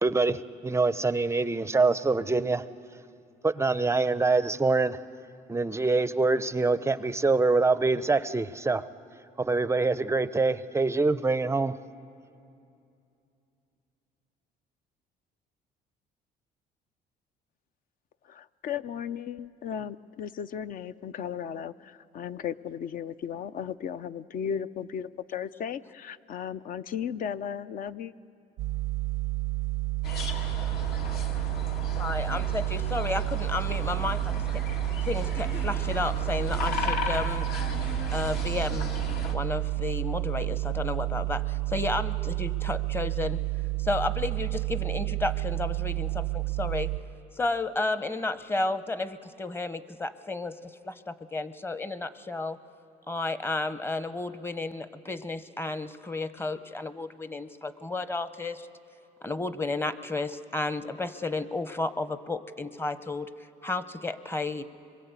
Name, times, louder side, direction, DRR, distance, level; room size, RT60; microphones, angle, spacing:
voice 1, 0.0-2.7 3.4-5.0 5.5-8.9 9.4-11.8, right 3 dB, 15° right, 0.5 m, -25 dB
voice 2, 18.3-28.1, left 8 dB, 55° left, 0.6 m, -35 dB
sound 1, 28.6-47.0, right 24 dB, 90° right, 0.7 m, -30 dB
sound 2, 30.0-39.3, left 4 dB, 70° left, 2.4 m, -35 dB
voice 3, 32.0-34.4 35.0-38.9 39.3-43.4 43.8-46.9 47.4-52.6 53.1-58.7 59.2-63.3 63.6-64.6, left 3 dB, 15° left, 0.8 m, -32 dB
26.0 x 22.0 x 8.2 m
cardioid pair, 110°, 17 cm